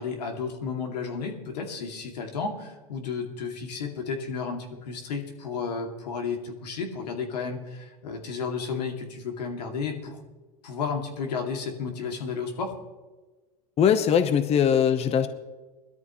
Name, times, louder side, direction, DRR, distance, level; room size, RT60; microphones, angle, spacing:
voice 1, 0.0-10.2 10.6-12.7, left 5 dB, 85° left, 3 dB, 2.4 m, -32 dB
voice 2, 13.8-15.3, left 8 dB, 30° left, 10 dB, 0.9 m, -21 dB
20.5 x 13.0 x 3.1 m, 1.2 s
supercardioid pair, 115°, 20 cm